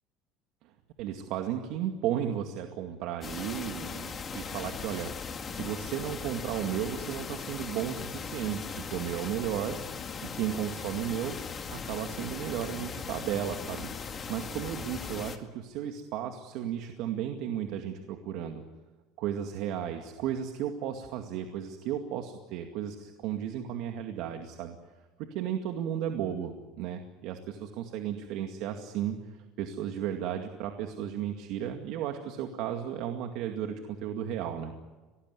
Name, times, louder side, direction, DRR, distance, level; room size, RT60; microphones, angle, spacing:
voice 1, 1.0-9.8 10.2-11.4 11.7-18.6 19.2-24.8 25.2-34.7, right 10 dB, 65° right, 5 dB, 2.2 m, -34 dB
sound 1, 3.2-15.4, left 5 dB, 25° left, 2.1 m, -39 dB
25.5 x 19.0 x 9.8 m, 1.3 s
cardioid pair, 145°, 0 cm